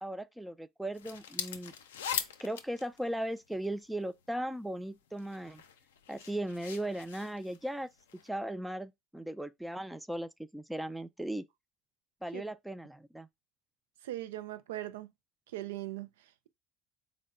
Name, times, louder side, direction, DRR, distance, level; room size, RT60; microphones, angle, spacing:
voice 1, 0.0-1.7 2.4-5.6 6.1-7.9 8.2-11.4 12.2-13.3, right 1 dB, 5° right, 0.3 m, -37 dB
sound 1, 0.9-4.0 4.7-8.3, left 8 dB, 85° left, 0.4 m, -41 dB
voice 2, 14.0-15.1 15.5-16.1, right 15 dB, 80° right, 0.4 m, -39 dB
3.9 x 2.1 x 3.7 m
hypercardioid pair, 70°, 0 cm